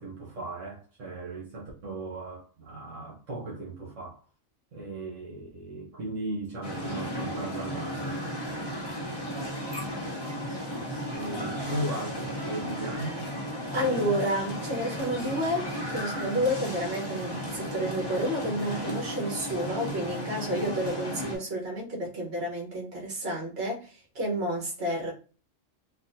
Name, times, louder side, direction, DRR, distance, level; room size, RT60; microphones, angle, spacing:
voice 1, 0.0-4.2 4.7-8.2 11.1-13.3 13.7-14.2, right 1 dB, 75° right, 1.3 m, -37 dB
sound 1, 6.6-21.4, equal, 25° left, 0.8 m, -34 dB
voice 2, 13.7-25.1, equal, 50° right, 1.5 m, -30 dB
4.1 x 2.2 x 2.7 m
omnidirectional pair, 1.3 m